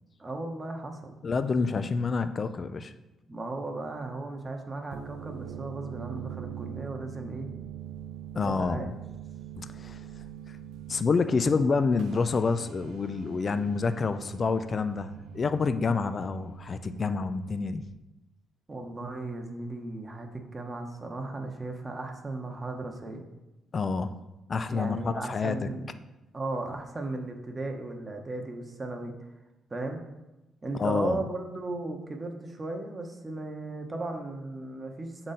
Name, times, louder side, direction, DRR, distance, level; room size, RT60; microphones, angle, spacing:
voice 1, 0.2-1.2 3.3-7.5 8.4-8.9 18.7-23.2 24.7-25.9 26.3-29.1 29.7-30.0 30.6-35.3, right 2 dB, 20° right, 3 dB, 0.8 m, -36 dB
voice 2, 1.2-2.9 8.3-8.9 9.6-10.0 10.9-17.8 23.7-24.1 24.5-25.7 30.8-31.2, left 4 dB, 35° left, 11 dB, 0.3 m, -28 dB
sound 1, 4.8-17.7, right 10 dB, 75° right, 0.4 m, -43 dB
7.4 x 3.8 x 4.1 m, 1.0 s
cardioid pair, 125°, 0 cm